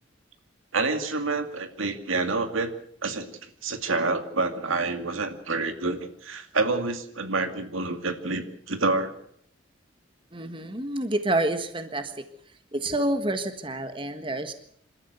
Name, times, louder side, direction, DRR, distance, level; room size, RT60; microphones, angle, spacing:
voice 1, 0.7-2.7 3.0-9.1, right 3 dB, 85° right, 8 dB, 2.3 m, -28 dB
voice 2, 10.3-12.1 12.7-14.5, right 1 dB, 25° right, 8 dB, 1.5 m, -28 dB
26.5 x 13.5 x 8.1 m, 0.67 s
head